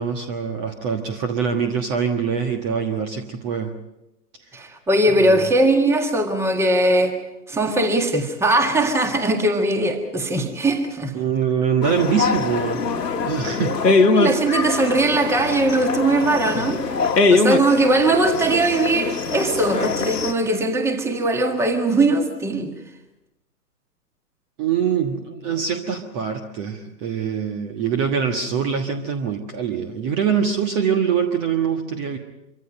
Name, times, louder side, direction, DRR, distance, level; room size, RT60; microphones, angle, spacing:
voice 1, 0.0-3.7 5.2-5.5 11.1-14.1 24.6-32.2, right 7 dB, 25° right, 6 dB, 1.4 m, -24 dB
voice 2, 4.5-7.2 7.5-11.1 14.1-16.8 17.3-22.7, right 2 dB, 5° right, 6 dB, 1.7 m, -20 dB
sound 1, 11.8-20.3, left 4 dB, 75° left, 1.8 m, -22 dB
25.5 x 24.0 x 5.4 m, 0.90 s
figure-of-eight pair, 125°, 49 cm